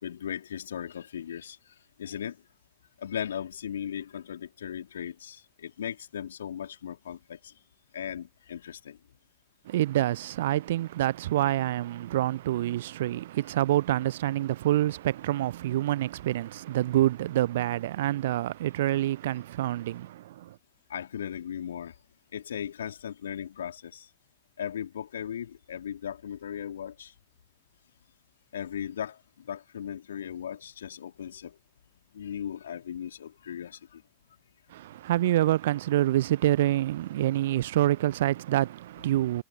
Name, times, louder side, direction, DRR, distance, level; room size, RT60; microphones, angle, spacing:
voice 1, 0.0-2.4 3.0-7.5 7.9-9.0 20.9-22.0 22.3-24.1 24.6-27.1 28.5-29.2 29.5-31.5 32.1-34.0, left 9 dB, 65° left, 4.2 m, -37 dB
voice 2, 9.7-20.6 34.7-39.4, right 14 dB, 55° right, 0.5 m, -27 dB
figure-of-eight pair, 90°, 0 cm